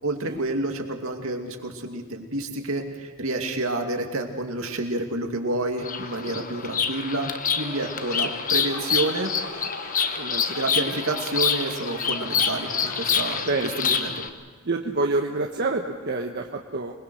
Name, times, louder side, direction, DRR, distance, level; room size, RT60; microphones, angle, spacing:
voice 1, 0.0-9.3 10.5-14.3, right 2 dB, 70° right, 3 dB, 2.6 m, -29 dB
Bird vocalization bird call bird song, 5.8-14.3, left 6 dB, 40° left, 1.2 m, -27 dB
sound 1, 7.6-13.5, left 2 dB, 80° left, 5.0 m, -40 dB
voice 2, 10.2-10.5 13.4-14.0 14.6-16.9, right 2 dB, 50° right, 2 dB, 1.2 m, -28 dB
26.5 x 20.5 x 6.4 m, 1.5 s
head